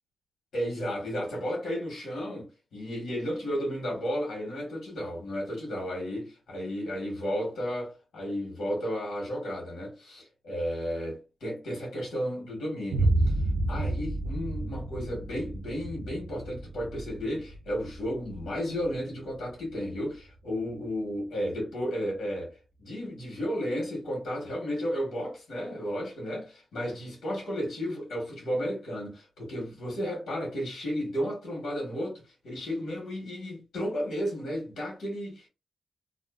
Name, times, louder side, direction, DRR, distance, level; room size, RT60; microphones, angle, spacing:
voice 1, 0.5-13.3 13.7-35.5, equal, 75° left, 1.2 m, -33 dB
Boom, 12.9-20.8, right 2 dB, 85° right, 0.4 m, -31 dB
2.5 x 2.4 x 2.4 m
cardioid pair, 105°, 0 cm